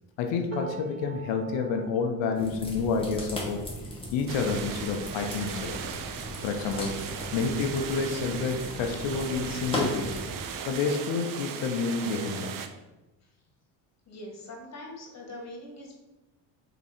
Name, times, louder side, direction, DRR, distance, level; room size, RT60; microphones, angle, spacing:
voice 1, 0.2-3.7 4.1-5.8 6.4-7.0 7.3-10.2 10.7-12.5, left 5 dB, 75° left, 4 dB, 0.7 m, -29 dB
sound 1, 0.5-6.7 7.2-7.4 7.7-8.5 9.5-9.6, right 7 dB, 80° right, 0.8 m, -47 dB
sound 2, 2.3-10.4, equal, 10° left, 1.1 m, -37 dB
sound 3, 4.3-12.7, right 7 dB, 45° right, 0.5 m, -37 dB
voice 2, 14.1-16.0, left 1 dB, 35° left, 0 dB, 1.4 m, -43 dB
3.6 x 3.0 x 4.2 m, 1.0 s
supercardioid pair, 70°, 45 cm